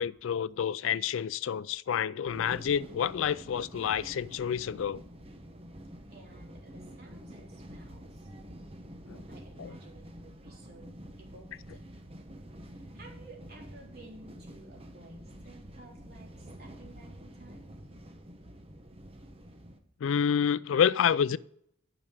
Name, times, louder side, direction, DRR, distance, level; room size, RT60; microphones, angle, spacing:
voice 1, 0.0-5.0 9.1-9.2 9.6-9.7 20.0-21.4, left 8 dB, 75° left, 0.3 m, -28 dB
sound 1, 2.3-19.8, equal, 30° right, 1.0 m, -48 dB
voice 2, 6.1-8.3 9.3-11.8 12.7-17.7, right 2 dB, 50° right, 3.9 m, -54 dB
10.5 x 6.1 x 6.7 m
head